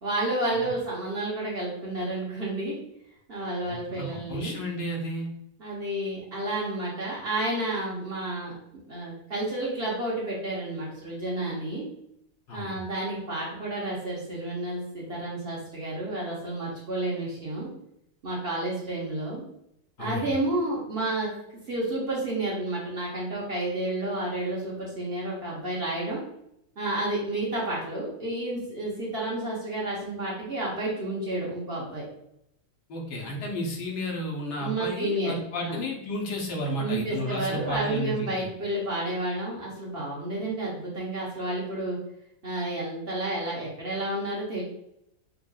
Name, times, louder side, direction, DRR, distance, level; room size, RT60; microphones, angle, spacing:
voice 1, 0.0-2.8 3.3-4.6 5.6-8.5 8.9-11.8 12.5-17.7 18.2-19.4 20.0-21.3 21.7-26.2 26.8-32.0 34.6-35.3 35.6-35.8 36.8-42.0 42.4-44.6, right 1 dB, 45° right, -5 dB, 1.0 m, -30 dB
voice 2, 3.6-5.3 12.5-12.8 20.0-20.3 32.9-38.5, equal, 85° left, -1 dB, 1.4 m, -33 dB
5.5 x 2.4 x 2.3 m, 0.77 s
omnidirectional pair, 1.7 m